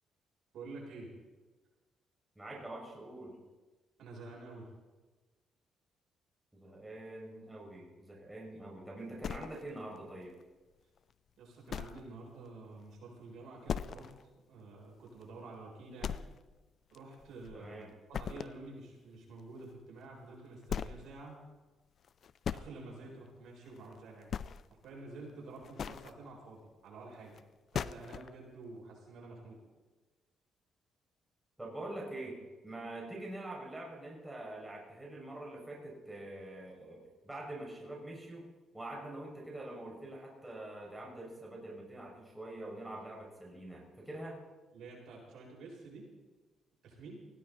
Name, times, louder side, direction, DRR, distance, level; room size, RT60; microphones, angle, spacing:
voice 1, 0.5-1.1 4.0-4.7 11.4-14.1 14.5-16.2 16.9-17.8 18.1-21.4 22.5-24.3 24.8-27.4 27.7-29.6 44.7-46.0 46.8-47.2, right 3 dB, 75° right, -3 dB, 7.3 m, -49 dB
voice 2, 2.4-3.4 6.5-10.4 17.5-17.9 31.6-38.5 38.7-44.4, right 1 dB, 10° right, -2 dB, 5.9 m, -45 dB
sound 1, 9.2-10.0 10.4-10.5 11.0-11.1 11.7-12.2 12.4-12.5 12.9-13.0 13.7-14.2 14.6-14.7 15.2-15.3 16.0-16.6 16.9-17.7 18.1-18.6 20.0-20.1 20.6-21.1 22.0-22.7 23.7-23.9 24.2-24.8 25.5-26.1 27.4-27.5 27.7-28.3, left 7 dB, 55° left, 0.5 m, -39 dB
19.5 x 16.5 x 4.1 m, 1.3 s
cardioid pair, 90°, 0 cm